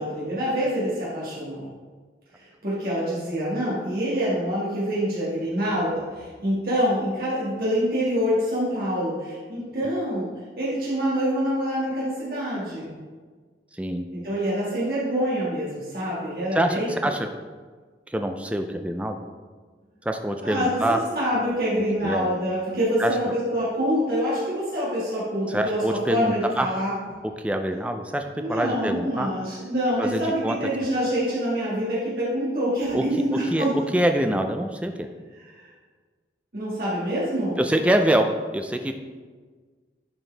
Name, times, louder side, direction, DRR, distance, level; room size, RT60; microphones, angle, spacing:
voice 1, 0.0-1.7 2.4-10.3 10.6-12.9 14.2-16.9 20.4-26.9 28.3-33.7 35.5-35.7 36.5-37.7, equal, 55° right, -8 dB, 1.7 m, -26 dB
voice 2, 16.5-17.3 18.1-19.2 20.1-21.0 22.0-22.3 23.0-23.1 25.5-26.7 27.4-29.3 30.0-30.6 32.9-33.0 33.3-35.1 37.6-38.3 38.5-38.9, right 1 dB, 5° right, 5 dB, 0.4 m, -25 dB
10.5 x 4.5 x 3.3 m, 1.5 s
head